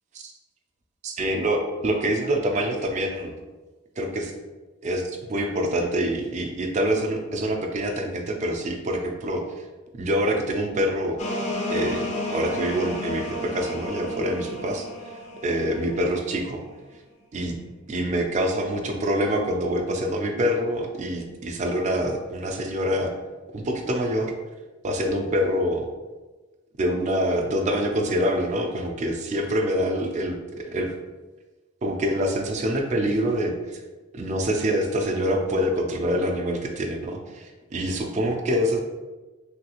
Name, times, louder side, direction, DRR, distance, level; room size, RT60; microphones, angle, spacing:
voice 1, 1.0-3.3 4.0-4.3 4.8-9.4 9.9-11.2 11.7-14.9 15.4-16.6 17.3-17.6 17.9-23.1 23.5-24.4 24.8-25.9 26.8-30.9 31.8-33.8 34.1-38.8, equal, 35° right, 3 dB, 0.3 m, -25 dB
sound 1, 11.2-16.6, left 1 dB, 35° left, 0.4 m, -32 dB
3.2 x 2.3 x 2.9 m, 1.2 s
head